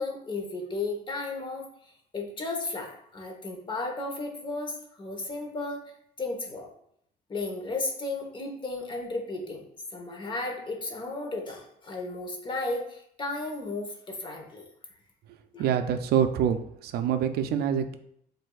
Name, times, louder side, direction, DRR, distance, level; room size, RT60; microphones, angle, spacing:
voice 1, 0.0-5.8 6.2-6.7 7.3-9.6 9.9-14.6 15.5-15.7, left 2 dB, 30° left, 2 dB, 1.0 m, -34 dB
voice 2, 15.6-18.0, right 8 dB, 70° right, 8 dB, 0.4 m, -26 dB
7.5 x 2.7 x 2.3 m, 0.70 s
cardioid pair, 110°, 17 cm